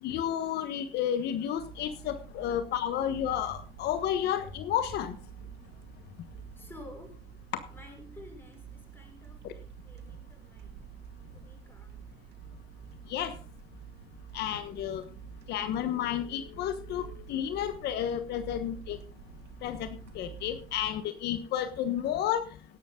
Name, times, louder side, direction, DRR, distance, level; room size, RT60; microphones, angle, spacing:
voice 1, 0.0-5.2 13.1-13.4 14.3-15.0 15.5-19.0 19.6-19.9 20.1-22.4, left 10 dB, 80° left, 10 dB, 1.2 m, -31 dB
sound 1, 1.5-20.9, right 8 dB, 80° right, 2.1 m, -48 dB
voice 2, 6.6-7.2 7.7-10.8 11.3-12.2 18.4-18.5, left 2 dB, 15° left, 3 dB, 5.6 m, -51 dB
16.5 x 11.5 x 3.8 m, 0.36 s
cardioid pair, 110°, 17 cm